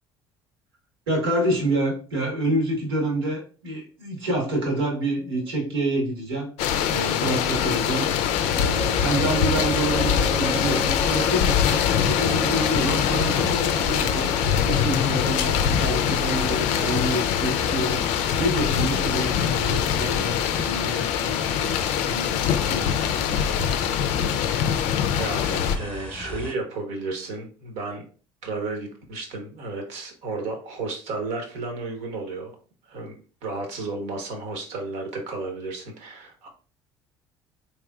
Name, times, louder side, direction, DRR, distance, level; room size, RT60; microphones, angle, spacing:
voice 1, 1.1-6.5 6.9-8.1 8.5-14.3 14.6-18.0 18.4-21.8 22.0-23.5, right 1 dB, 85° right, -1 dB, 1.5 m, -28 dB
sound 1, 5.1-5.7 7.9-19.2, right 3 dB, 25° right, 0.6 m, -38 dB
sound 2, 6.6-25.8, left 9 dB, 65° left, 0.4 m, -23 dB
sound 3, 8.3-26.5, left 3 dB, 10° left, 0.9 m, -37 dB
voice 2, 25.1-28.0 28.4-32.5 32.9-33.1 33.4-36.5, right 3 dB, 65° right, 3 dB, 1.1 m, -33 dB
3.6 x 3.1 x 2.3 m, 0.39 s
hypercardioid pair, 70°, 12 cm